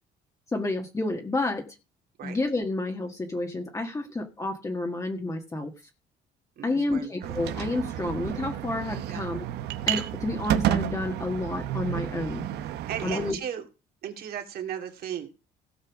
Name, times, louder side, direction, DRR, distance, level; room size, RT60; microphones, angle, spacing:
voice 1, 0.5-1.7 2.2-5.7 6.6-9.5 9.8-12.5 13.0-13.4, left 2 dB, 20° left, 3 dB, 1.6 m, -30 dB
voice 2, 6.6-7.1 9.1-9.2 12.8-13.6 14.0-15.3, right 9 dB, 65° right, 4 dB, 2.7 m, -35 dB
sound 1, 7.2-13.3, right 13 dB, 80° right, 1.0 m, -31 dB
16.5 x 5.6 x 6.1 m, 0.30 s
cardioid pair, 110°, 17 cm